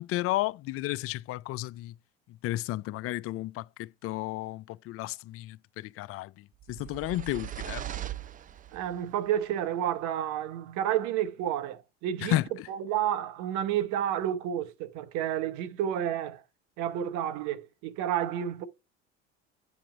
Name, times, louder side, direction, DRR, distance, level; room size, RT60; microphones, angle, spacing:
voice 1, 0.0-1.9 2.4-6.3 6.7-7.9 12.3-12.4, left 17 dB, 45° left, 0.4 m, -32 dB
sound 1, 6.6-9.0, right 12 dB, 25° right, 0.4 m, -39 dB
voice 2, 8.7-12.4 12.7-16.4 16.8-18.7, right 10 dB, 65° right, 0.9 m, -30 dB
8.6 x 2.9 x 5.0 m
hypercardioid pair, 75°, 32 cm